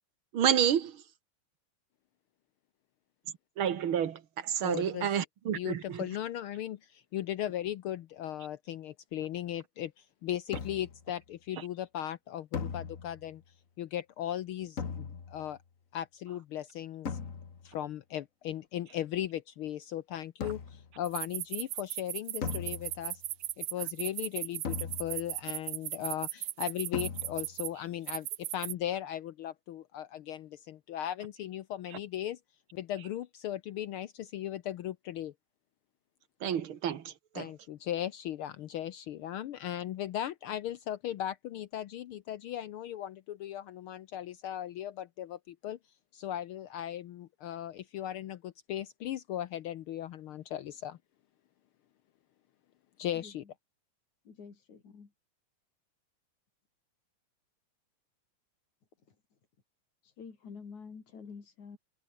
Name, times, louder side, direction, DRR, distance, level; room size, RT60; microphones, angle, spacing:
voice 1, 0.3-1.0 3.6-6.0 36.4-37.5, right 9 dB, 50° right, 2.0 m, -29 dB
voice 2, 4.6-5.1 5.5-9.9 10.2-13.4 13.8-15.6 15.9-17.2 17.6-23.2 23.6-32.4 32.7-35.3 37.4-45.8 46.1-51.0 53.0-53.4, left 11 dB, 85° left, 1.1 m, -37 dB
sound 1, 10.5-11.1 12.5-13.4 14.8-15.5 17.1-17.8 20.4-21.0 22.4-23.3 24.6-25.4 26.9-27.6, left 6 dB, 35° left, 1.4 m, -39 dB
sound 2, 21.1-27.7 28.1-28.7, right 15 dB, 80° right, 2.4 m, -36 dB
voice 3, 53.2-53.5 54.3-55.1 59.1-59.2 60.0-61.8, left 5 dB, 65° left, 5.3 m, -48 dB
omnidirectional pair, 3.5 m